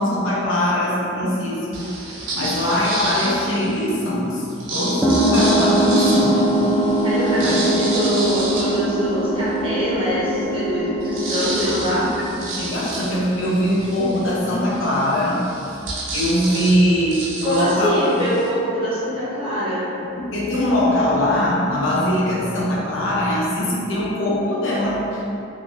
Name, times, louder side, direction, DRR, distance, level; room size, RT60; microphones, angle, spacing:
voice 1, 0.0-2.0 2.3-6.6 7.4-8.3 11.7-15.8 16.1-17.9 18.2-18.3 20.0-25.2, left 1 dB, 70° left, -4 dB, 0.6 m, -22 dB
sound 1, 1.7-3.9 4.5-9.7 10.2-10.3 10.5-18.5, right 2 dB, 75° right, 0.5 m, -30 dB
sound 2, 5.0-13.2, right 1 dB, ahead, 0.4 m, -21 dB
voice 2, 7.0-12.1 17.4-19.9, equal, 30° right, -10 dB, 1.0 m, -24 dB
3.4 x 2.4 x 2.5 m, 2.7 s
head